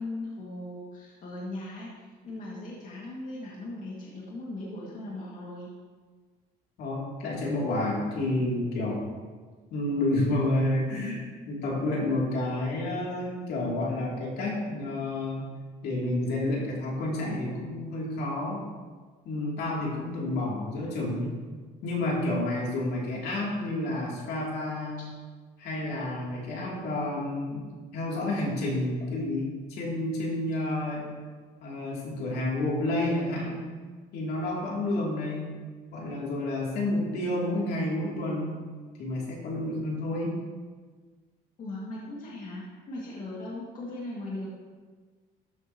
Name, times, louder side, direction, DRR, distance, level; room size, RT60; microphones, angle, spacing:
voice 1, 0.0-5.7 41.6-44.5, left 2 dB, 50° left, -5 dB, 2.1 m, -38 dB
voice 2, 6.8-9.1 9.7-11.2 11.5-15.5 15.8-18.6 19.2-21.3 21.8-25.0 25.6-27.6 27.9-31.1 31.6-33.6 34.1-35.5 35.9-38.5 39.0-40.4, left 1 dB, 75° left, -4 dB, 2.9 m, -30 dB
13.0 x 7.9 x 3.0 m, 1.5 s
cardioid pair, 110°, 17 cm